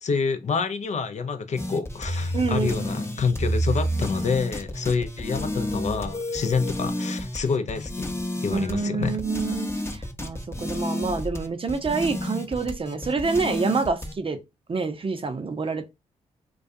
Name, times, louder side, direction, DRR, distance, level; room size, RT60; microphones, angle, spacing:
voice 1, 0.0-8.1 8.4-9.2, left 5 dB, 50° left, 0.5 m, -27 dB
sound 1, 1.6-14.1, equal, 15° left, 0.7 m, -30 dB
voice 2, 2.3-3.0 8.5-14.4 14.7-15.9, right 4 dB, 35° right, 0.6 m, -27 dB
2.3 x 2.3 x 2.6 m
hypercardioid pair, 45°, 16 cm